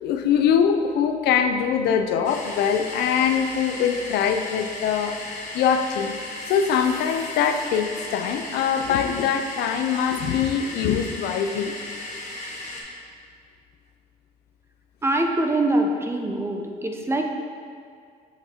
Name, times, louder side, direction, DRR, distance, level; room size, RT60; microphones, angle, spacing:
voice 1, 0.0-5.2 5.5-6.1 6.5-11.8, left 7 dB, 75° left, 7 dB, 0.5 m, -23 dB
sound 1, 2.2-12.8, left 2 dB, 45° left, 1.4 m, -36 dB
voice 2, 15.0-17.3, right 1 dB, 15° right, 3 dB, 0.6 m, -23 dB
7.1 x 5.8 x 2.8 m, 2.2 s
cardioid pair, 110°, 17 cm